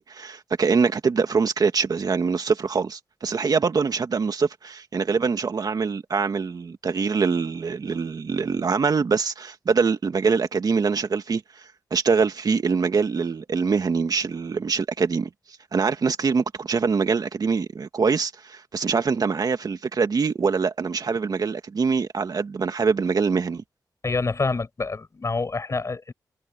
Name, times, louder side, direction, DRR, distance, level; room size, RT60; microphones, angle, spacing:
voice 1, 0.0-11.4 11.9-15.3 15.7-23.6, right 5 dB, 60° right, 2.1 m, -24 dB
voice 2, 24.0-26.1, left 4 dB, 45° left, 5.1 m, -27 dB
cardioid pair, 75°, 7 cm